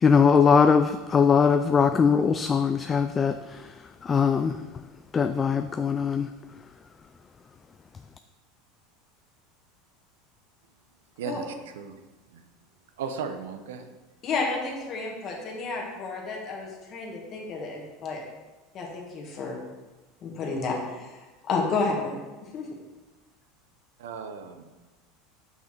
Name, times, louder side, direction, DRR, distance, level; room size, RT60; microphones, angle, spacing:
voice 1, 0.0-3.6 4.0-4.6 5.1-6.3, left 6 dB, 25° left, 9 dB, 0.3 m, -21 dB
voice 2, 11.2-12.0 12.3-12.4 13.0-13.9 24.0-24.7, right 6 dB, 85° right, 7 dB, 0.7 m, -36 dB
voice 3, 14.2-18.2 18.7-19.6 20.2-22.2 22.5-22.7, left 3 dB, 45° left, 0 dB, 1.9 m, -31 dB
5.9 x 5.7 x 4.4 m, 1.2 s
supercardioid pair, 105°, 0 cm